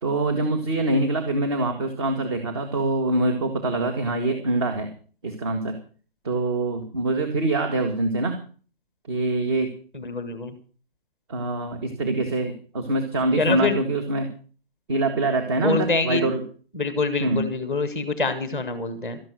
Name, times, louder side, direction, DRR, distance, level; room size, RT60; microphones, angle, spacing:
voice 1, 0.0-4.9 5.2-5.8 6.2-8.4 9.1-9.7 11.3-14.3 14.9-16.4 17.2-17.5, right 2 dB, 25° right, 5 dB, 2.0 m, -24 dB
voice 2, 9.9-10.5 13.4-13.7 15.6-16.2 16.8-19.2, left 3 dB, ahead, 10 dB, 1.1 m, -25 dB
13.0 x 12.0 x 6.4 m, 0.40 s
hypercardioid pair, 170°, 29 cm